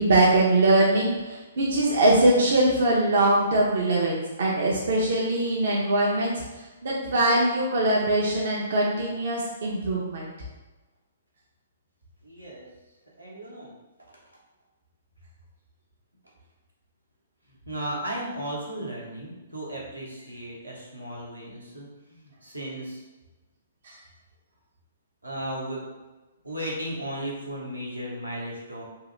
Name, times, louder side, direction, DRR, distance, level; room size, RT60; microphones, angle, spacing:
voice 1, 0.0-10.3 23.8-24.0, right 1 dB, 55° right, -3 dB, 0.5 m, -22 dB
voice 2, 12.2-12.6 13.2-13.7 17.5-23.0 25.2-25.8 26.4-28.8, right 1 dB, 90° right, -4 dB, 0.9 m, -35 dB
2.8 x 2.3 x 3.1 m, 1.1 s
figure-of-eight pair, 120°, 0 cm